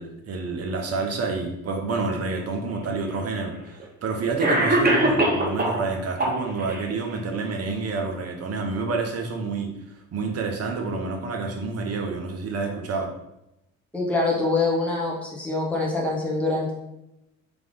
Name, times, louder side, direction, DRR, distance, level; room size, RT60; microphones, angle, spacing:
voice 1, 0.0-9.7 10.1-13.1, right 4 dB, 40° right, 3 dB, 0.9 m, -28 dB
Cough, 2.7-2.8 3.8-3.9 4.4-5.8 6.2-6.8, right 1 dB, 25° right, 1.1 m, -21 dB
voice 2, 13.9-16.7, left 3 dB, 5° left, -4 dB, 1.5 m, -24 dB
3.5 x 3.4 x 3.7 m, 0.87 s
figure-of-eight pair, 50°, 40 cm